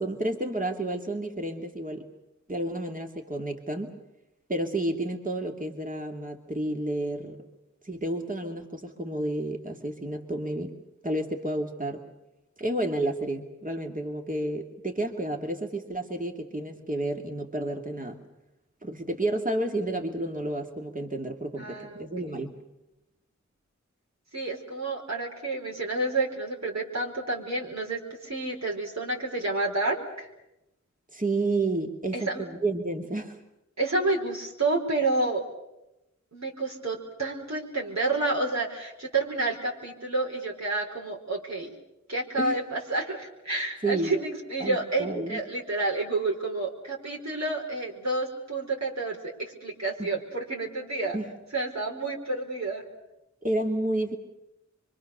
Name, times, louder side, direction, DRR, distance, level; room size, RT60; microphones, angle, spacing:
voice 1, 0.0-2.1 2.5-4.0 4.5-7.4 7.8-10.8 11.0-12.0 12.6-18.2 18.8-22.6 31.1-33.4 42.4-42.6 43.8-44.1 44.6-45.4 50.0-50.1 51.1-51.3 53.4-54.2, right 1 dB, 30° right, 3 dB, 2.6 m, -31 dB
voice 2, 21.6-22.4 24.3-30.3 32.1-32.4 33.8-35.4 36.3-41.7 42.1-51.2 51.5-52.8, right 2 dB, 65° right, -2 dB, 4.8 m, -30 dB
25.5 x 24.5 x 6.8 m, 0.91 s
wide cardioid pair, 45°, 29 cm